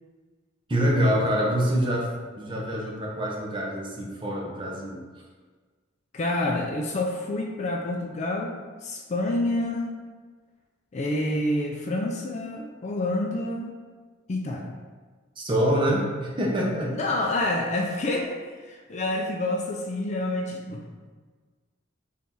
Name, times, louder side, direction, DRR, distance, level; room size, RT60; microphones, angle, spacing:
voice 1, 0.7-2.1 2.4-5.0 15.4-16.9, equal, 25° right, -2 dB, 0.6 m, -25 dB
voice 2, 6.1-9.9 10.9-13.8 14.3-14.8 17.0-21.1, left 1 dB, 35° left, 1 dB, 0.3 m, -28 dB
4.2 x 2.7 x 3.6 m, 1.4 s
head